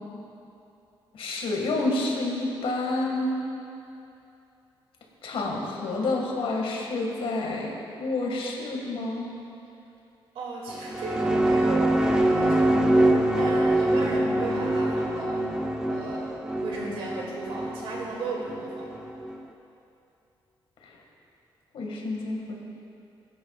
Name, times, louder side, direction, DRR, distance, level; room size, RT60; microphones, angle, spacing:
voice 1, 1.1-3.4 5.2-7.7 8.0-9.3 21.7-22.6, left 2 dB, 75° left, -1 dB, 2.0 m, -29 dB
voice 2, 10.3-15.5 15.9-16.3 16.6-18.9, right 3 dB, 85° right, -4 dB, 2.6 m, -35 dB
sound 1, 10.7-19.4, right 1 dB, 5° right, 0.9 m, -24 dB
17.0 x 9.7 x 2.5 m, 2.7 s
cardioid pair, 80°, 9 cm